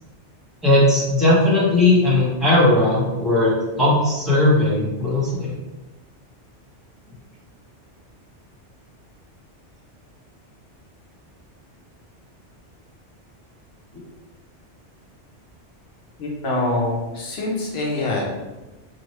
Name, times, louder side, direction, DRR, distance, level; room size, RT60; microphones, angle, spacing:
voice 1, 0.6-5.6, left 1 dB, ahead, -8 dB, 0.8 m, -18 dB
voice 2, 16.2-18.2, left 2 dB, 65° left, -2 dB, 1.0 m, -24 dB
2.9 x 2.1 x 3.1 m, 1.1 s
omnidirectional pair, 1.2 m